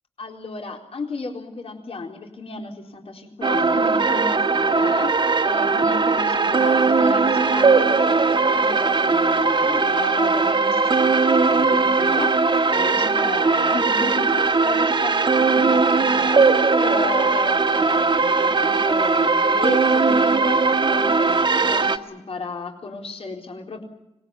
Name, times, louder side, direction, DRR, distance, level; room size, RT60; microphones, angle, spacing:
voice 1, 0.2-5.1 5.4-11.1 11.5-12.3 12.7-16.4 16.8-23.8, left 3 dB, 55° left, 1 dB, 4.2 m, -33 dB
sound 1, 3.4-22.0, right 4 dB, 40° right, 1.7 m, -19 dB
25.5 x 20.0 x 9.0 m, 0.94 s
wide cardioid pair, 95°, 12 cm